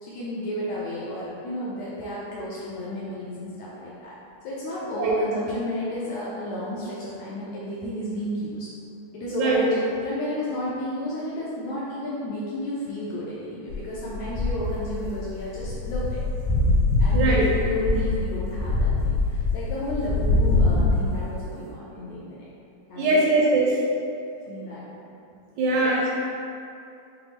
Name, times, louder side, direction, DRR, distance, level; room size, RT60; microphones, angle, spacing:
voice 1, 0.0-4.2 4.4-8.7 9.1-16.2 17.0-22.5 22.9-23.3 24.5-24.9 25.8-25.9, left 1 dB, 80° left, -7 dB, 1.6 m, -32 dB
voice 2, 9.3-9.7 17.1-17.4 22.9-23.8 25.6-26.1, right 2 dB, 80° right, -4 dB, 1.7 m, -21 dB
sound 1, 13.7-21.3, left 2 dB, 45° left, 1.4 m, -23 dB
6.0 x 2.0 x 3.3 m, 2.6 s
omnidirectional pair, 3.6 m